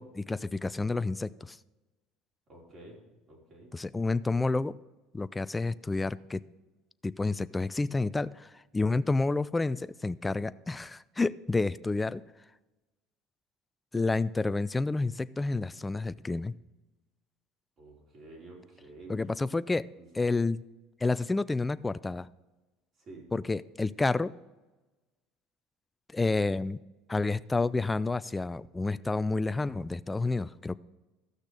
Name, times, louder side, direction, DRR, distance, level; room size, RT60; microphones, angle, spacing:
voice 1, 0.0-1.6 3.7-4.8 5.1-6.4 7.0-12.2 13.9-16.5 19.1-19.9 20.1-20.6 21.0-22.3 23.3-24.3 26.1-26.8 27.1-30.8, left 3 dB, 15° left, 16 dB, 0.4 m, -29 dB
voice 2, 2.5-3.7 17.8-19.2 19.9-20.4 23.0-23.3, right 2 dB, 45° right, -3 dB, 4.4 m, -50 dB
13.5 x 6.5 x 5.0 m, 1.1 s
supercardioid pair, 105°, 0 cm